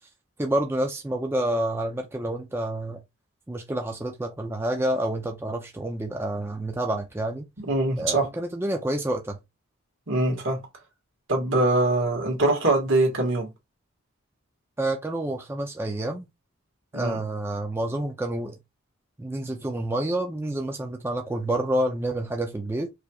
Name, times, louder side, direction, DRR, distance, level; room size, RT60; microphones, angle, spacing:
voice 1, 0.4-3.0 3.5-7.5 8.0-9.4 14.8-16.3 16.9-18.6 19.2-22.9, right 1 dB, 10° right, 0.4 m, -28 dB
voice 2, 7.6-8.3 10.1-10.7 11.3-13.5 16.9-17.2, right 2 dB, 70° right, 1.7 m, -23 dB
4.8 x 3.0 x 2.3 m
head